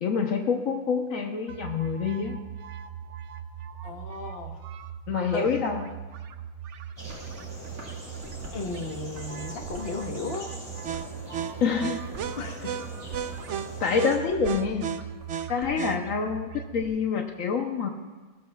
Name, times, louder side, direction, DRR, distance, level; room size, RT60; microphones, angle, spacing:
voice 1, 0.0-2.4 5.1-5.9 11.6-12.1 13.8-14.9 15.5-17.9, left 6 dB, 70° left, 3 dB, 1.2 m, -27 dB
sound 1, 1.5-16.8, right 8 dB, 65° right, 0.9 m, -37 dB
voice 2, 3.8-4.6 5.3-5.5 8.5-10.5 12.4-12.8 13.5-13.6, left 3 dB, 45° left, 3 dB, 1.5 m, -35 dB
sound 2, 7.0-14.2, equal, 20° right, 4.4 m, -43 dB
sound 3, 7.0-7.3 7.6-8.7 9.1-10.0 10.3-11.2 11.6-12.3 12.6-13.3 13.6-15.7, right 1 dB, 85° right, 2.4 m, -47 dB
20.0 x 18.0 x 2.3 m, 1.3 s
omnidirectional pair, 1.4 m